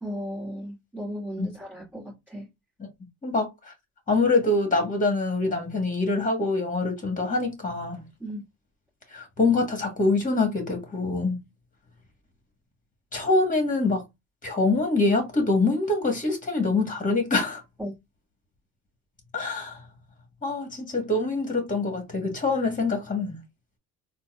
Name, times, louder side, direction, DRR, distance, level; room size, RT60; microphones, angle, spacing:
voice 1, 0.0-2.5 8.2-8.4 17.8-17.9, equal, 5° right, 1.8 m, -35 dB
voice 2, 3.2-3.7 4.1-8.0 9.1-11.4 13.1-14.0 14.4-17.6 19.3-19.8 20.4-23.4, left 3 dB, 20° left, 1.4 m, -25 dB
3.9 x 2.2 x 2.4 m
supercardioid pair, 85°, 36 cm